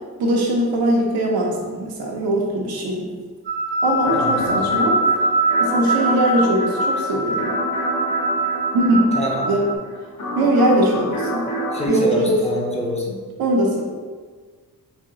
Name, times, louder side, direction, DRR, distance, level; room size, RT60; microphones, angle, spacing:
voice 1, 0.2-3.1 3.8-5.0 5.6-7.5 8.7-9.2 9.4-9.6 10.4-11.5 11.9-12.4 13.4-13.8, right 1 dB, 80° right, -1 dB, 1.0 m, -20 dB
sound 1, 3.5-9.7, right 2 dB, 30° right, 0.6 m, -22 dB
sound 2, 4.0-11.9, equal, 60° left, 1.2 m, -30 dB
voice 2, 4.1-4.5 9.1-9.5 11.7-13.1, equal, 20° left, -2 dB, 0.8 m, -25 dB
4.4 x 2.8 x 3.8 m, 1.5 s
cardioid pair, 125°, 35 cm